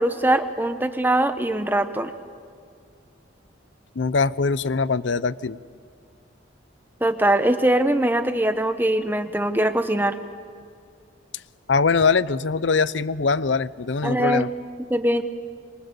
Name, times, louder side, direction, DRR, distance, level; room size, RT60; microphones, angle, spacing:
voice 1, 0.0-2.1 7.0-10.1 14.0-14.5 14.9-15.2, right 1 dB, 10° right, 9 dB, 1.0 m, -22 dB
voice 2, 4.0-5.6 11.7-14.5, left 4 dB, 70° left, 17 dB, 0.6 m, -22 dB
26.5 x 22.5 x 6.9 m, 2.2 s
head